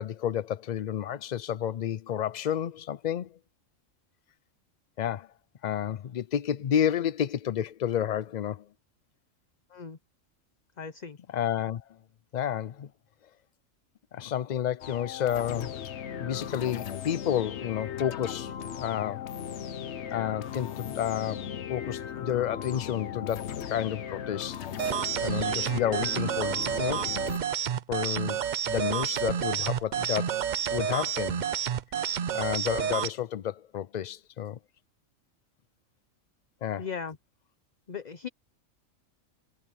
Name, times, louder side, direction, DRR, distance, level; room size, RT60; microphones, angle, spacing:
voice 1, 0.0-3.4 5.0-5.3 5.6-8.7 11.3-11.8 12.3-12.9 14.1-15.9 16.2-19.3 20.1-24.6 25.2-27.1 27.9-30.4 30.7-31.4 32.3-34.6 36.6-36.9, left 10 dB, 75° left, 0.4 m, -31 dB
voice 2, 10.8-11.2 36.8-37.2 37.9-38.3, left 6 dB, 40° left, 0.8 m, -37 dB
sound 1, 14.8-27.4, left 9 dB, 60° left, 1.1 m, -37 dB
sound 2, 24.8-33.1, right 8 dB, 55° right, 0.5 m, -29 dB
omnidirectional pair, 1.4 m